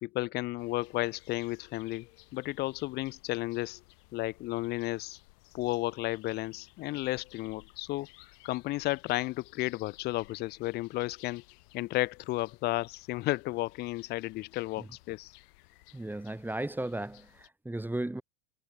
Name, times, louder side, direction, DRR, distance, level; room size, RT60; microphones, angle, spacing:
voice 1, 0.0-2.1 2.3-3.8 4.1-5.2 5.5-8.1 8.4-11.4 11.7-15.3, left 19 dB, 20° left, 0.4 m, -33 dB
sound 1, 0.6-17.5, left 24 dB, 65° left, 7.8 m, -58 dB
voice 2, 15.9-18.2, right 1 dB, 5° right, 1.9 m, -35 dB
supercardioid pair, 160°, 50 cm